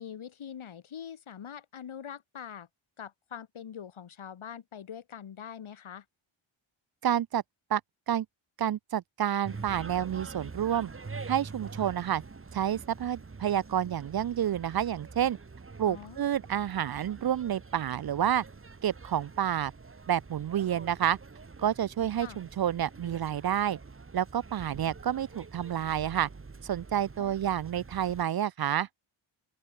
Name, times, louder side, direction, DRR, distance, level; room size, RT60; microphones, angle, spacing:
voice 1, 0.0-2.7 3.0-6.1 15.9-16.3 22.2-22.4 27.2-27.5, left 8 dB, 75° left, 3.8 m, -43 dB
voice 2, 7.0-7.4 7.7-7.8 8.1-8.3 8.6-10.9 11.3-12.2 12.5-15.4 15.8-18.4 18.8-19.7 20.1-21.2 21.6-23.8 24.1-26.3 26.6-28.9, right 10 dB, 50° right, 0.5 m, -29 dB
sound 1, 9.4-28.2, right 4 dB, 25° right, 1.9 m, -46 dB
open air
wide cardioid pair, 140°, 49 cm